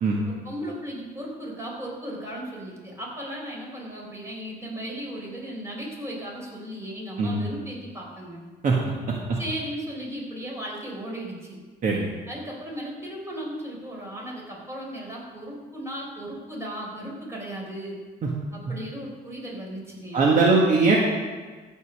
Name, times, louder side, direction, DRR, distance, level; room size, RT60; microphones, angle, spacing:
voice 1, 0.3-8.4 9.4-11.6 12.3-18.0 18.5-20.3, right 1 dB, 15° right, -3 dB, 4.4 m, -36 dB
voice 2, 20.1-21.0, right 3 dB, 50° right, -2 dB, 1.7 m, -20 dB
15.0 x 5.5 x 6.6 m, 1.4 s
cardioid pair, 110°, 17 cm